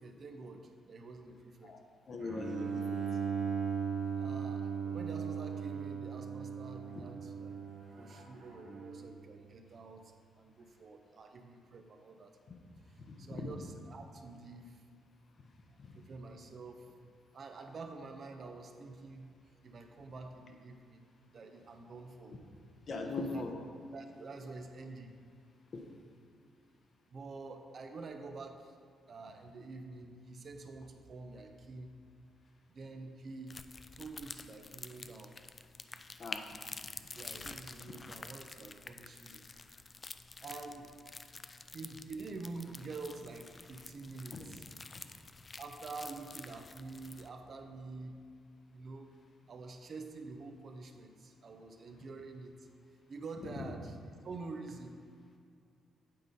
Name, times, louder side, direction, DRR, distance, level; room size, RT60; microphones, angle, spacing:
voice 1, 0.0-1.8 4.2-7.5 8.0-12.4 13.2-14.8 16.0-16.9 17.3-19.3 19.6-21.0 21.3-22.4 23.0-23.4 23.9-25.2 27.1-28.8 29.1-31.9 32.7-33.6 33.9-35.3 37.1-39.5 40.4-40.9 41.7-44.7 45.6-48.2 48.7-49.1 49.5-52.7 53.1-53.9 54.2-55.0, right 3 dB, 50° right, 5 dB, 0.7 m, -47 dB
voice 2, 2.1-3.1 6.9-7.0 12.5-12.6 13.0-13.5 15.8-16.0 22.9-23.5 25.7-25.8 36.2-36.6 44.3-44.4 44.9-45.0 53.4-53.7, left 3 dB, 45° left, 3 dB, 0.8 m, -41 dB
Bowed string instrument, 2.2-9.2, right 6 dB, 65° right, 1.7 m, -38 dB
sound 1, 33.5-47.3, left 3 dB, 30° left, 0.3 m, -49 dB
8.5 x 3.8 x 5.2 m, 2.2 s
cardioid pair, 90°, 0 cm